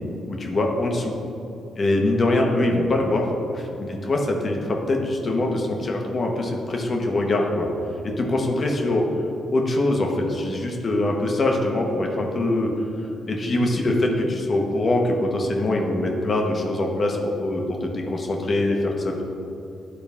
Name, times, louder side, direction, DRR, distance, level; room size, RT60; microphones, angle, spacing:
voice 1, 0.3-1.2 1.8-3.3 3.5-7.7 8.0-9.0 9.5-12.7 13.3-19.2, left 2 dB, 45° left, 1 dB, 1.3 m, -23 dB
11.0 x 3.9 x 3.6 m, 2.9 s
supercardioid pair, 60°, 0 cm